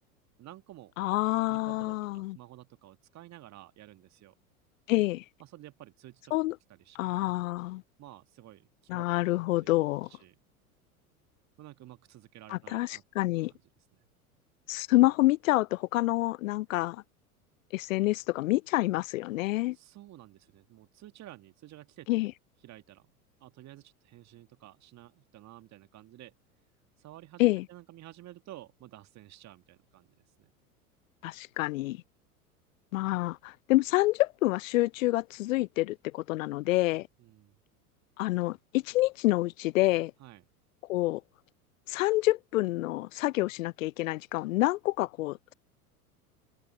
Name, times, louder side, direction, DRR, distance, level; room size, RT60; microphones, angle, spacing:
voice 1, 0.4-0.9 1.4-4.4 5.4-6.3 6.7-7.0 8.0-9.0 9.3-9.7 10.0-10.4 11.6-13.0 13.5-13.6 13.9-14.1 19.7-22.1 22.6-23.1 23.4-26.4 27.0-27.4 27.7-30.5 37.2-37.6 40.2-40.5, right 14 dB, 35° right, 2.2 m, -51 dB
voice 2, 1.0-2.4 4.9-5.2 6.3-6.5 7.0-7.8 8.9-10.1 12.5-13.5 14.7-17.0 17.7-19.8 22.1-22.3 27.4-27.6 31.2-32.0 32.9-37.1 38.2-40.1 40.9-41.2 41.9-45.5, left 18 dB, 65° left, 0.5 m, -27 dB
open air
figure-of-eight pair, 85°, 44 cm